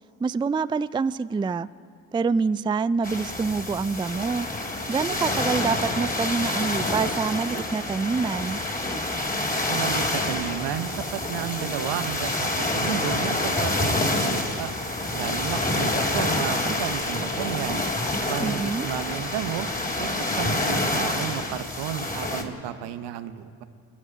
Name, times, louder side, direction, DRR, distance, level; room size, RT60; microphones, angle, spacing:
voice 1, 0.2-1.7 2.1-4.5 4.9-8.6 18.4-18.9, right 5 dB, 10° right, 16 dB, 0.4 m, -26 dB
sound 1, 3.0-22.4, left 2 dB, 20° left, 3.7 m, -27 dB
voice 2, 9.7-14.7 15.1-17.9 18.3-19.7 20.0-23.6, right 11 dB, 70° right, 11 dB, 1.1 m, -32 dB
28.5 x 9.9 x 9.9 m, 2.4 s
hypercardioid pair, 40°, 42 cm